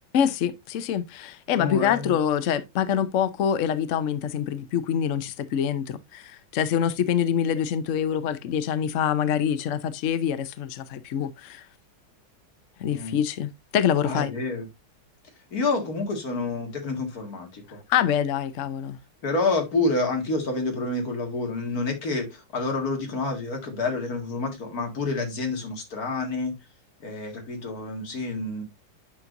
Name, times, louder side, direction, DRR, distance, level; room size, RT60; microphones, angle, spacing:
voice 1, 0.1-11.7 12.8-14.3 17.9-19.0, left 9 dB, 80° left, 0.6 m, -25 dB
voice 2, 1.5-2.1 12.9-13.2 14.0-14.7 15.5-17.8 19.2-26.5 27.0-28.6, left 3 dB, 45° left, 2.4 m, -28 dB
9.6 x 6.0 x 2.6 m
omnidirectional pair, 2.2 m